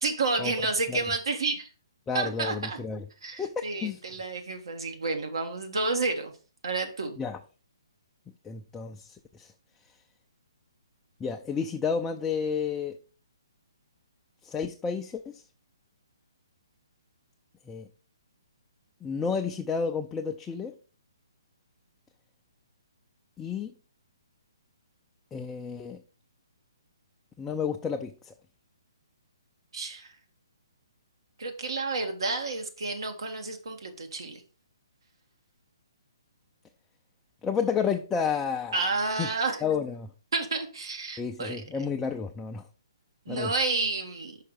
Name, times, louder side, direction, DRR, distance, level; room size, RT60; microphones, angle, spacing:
voice 1, 0.0-1.7 2.1-2.8 3.2-6.3 6.6-7.2 29.7-30.1 31.4-34.4 38.7-39.6 40.3-41.6 43.2-44.4, right 3 dB, 75° right, 1.5 m, -30 dB
voice 2, 2.1-3.0 3.4-3.5 3.8-4.0 7.2-7.4 8.4-9.5 11.2-13.0 14.4-15.4 17.7-17.9 19.0-20.7 23.4-23.7 25.3-26.0 27.4-28.3 37.4-38.8 39.2-39.3 39.6-40.1 41.2-42.6 43.3-43.5, left 6 dB, 10° left, 0.4 m, -31 dB
5.7 x 5.0 x 4.4 m
hypercardioid pair, 140°, 3 cm